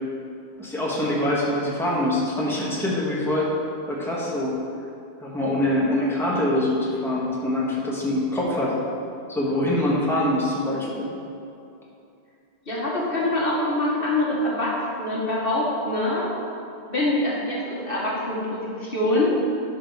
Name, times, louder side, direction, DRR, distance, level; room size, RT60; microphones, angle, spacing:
voice 1, 0.6-3.6 3.9-4.5 5.2-8.8 9.3-11.1, left 1 dB, ahead, -6 dB, 1.5 m, -24 dB
voice 2, 12.7-16.3 16.9-19.3, left 1 dB, 60° left, -5 dB, 1.8 m, -24 dB
11.5 x 4.3 x 5.5 m, 2.6 s
omnidirectional pair, 1.1 m